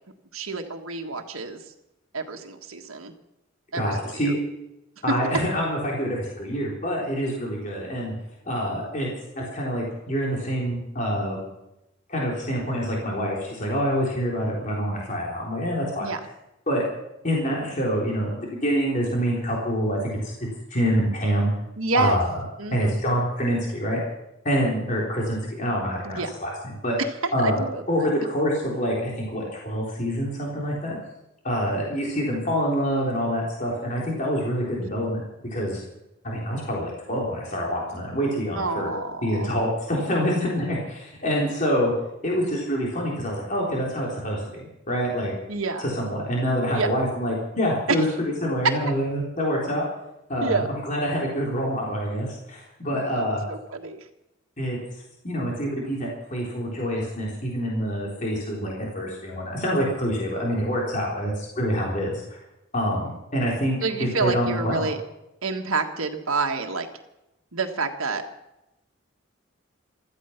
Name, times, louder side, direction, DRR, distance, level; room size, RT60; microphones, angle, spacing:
voice 1, 0.3-1.6 2.1-3.1 3.7-4.3 16.0-16.2 21.8-22.2 22.6-23.0 26.0-26.3 27.4-28.1 34.8-34.9 38.5-39.5 45.5-45.9 46.7-46.9 47.9-48.0 50.4-50.7 52.9-54.0 63.8-65.0 65.4-66.9 67.5-68.2, right 4 dB, 85° right, 4 dB, 1.6 m, -28 dB
voice 2, 3.7-4.4 5.0-8.1 8.5-9.1 9.4-11.4 12.1-16.1 16.7-16.8 17.2-20.3 20.7-21.5 21.9-22.3 22.7-24.0 24.4-26.5 26.8-27.0 27.3-31.0 31.4-35.2 35.5-35.8 36.2-38.9 39.2-41.9 42.2-45.3 45.8-48.1 48.4-49.8 50.3-53.4 54.6-54.8 55.2-62.4 62.7-63.8 64.2-64.9, equal, 35° left, -3 dB, 3.8 m, -26 dB
15.5 x 13.5 x 5.8 m, 0.90 s
head